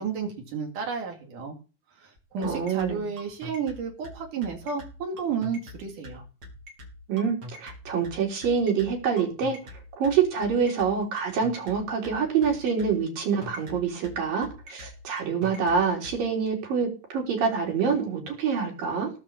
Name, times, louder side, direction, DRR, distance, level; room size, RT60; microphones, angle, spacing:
voice 1, 0.0-1.6 2.0-6.2, right 6 dB, 65° right, 2 dB, 4.3 m, -32 dB
sound 1, 2.2-16.2, left 1 dB, 45° right, 4.4 m, -43 dB
voice 2, 2.4-3.1 7.1-9.6 10.0-19.1, right 6 dB, 85° right, -1 dB, 5.4 m, -26 dB
17.5 x 5.9 x 7.1 m, 0.35 s
omnidirectional pair, 3.9 m